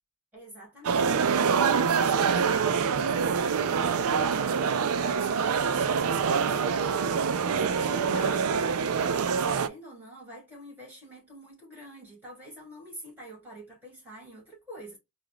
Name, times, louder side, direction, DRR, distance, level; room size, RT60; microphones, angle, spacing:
voice 1, 0.3-7.1 7.4-8.5 9.5-15.0, right 1 dB, 10° right, 2.8 m, -46 dB
sound 1, 0.8-9.7, right 6 dB, 80° right, 0.4 m, -25 dB
4.7 x 2.5 x 3.2 m
head